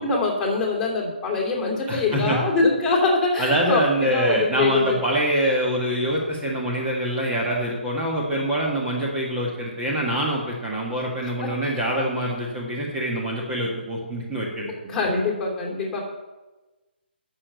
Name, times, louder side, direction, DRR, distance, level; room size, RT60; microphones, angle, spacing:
voice 1, 0.0-5.0 11.4-11.7 14.9-16.0, left 3 dB, 10° left, -4 dB, 2.9 m, -24 dB
voice 2, 1.9-2.4 3.4-14.7, right 1 dB, 15° right, -4 dB, 1.6 m, -25 dB
9.7 x 6.8 x 8.2 m, 1.2 s
figure-of-eight pair, 150°, 6 cm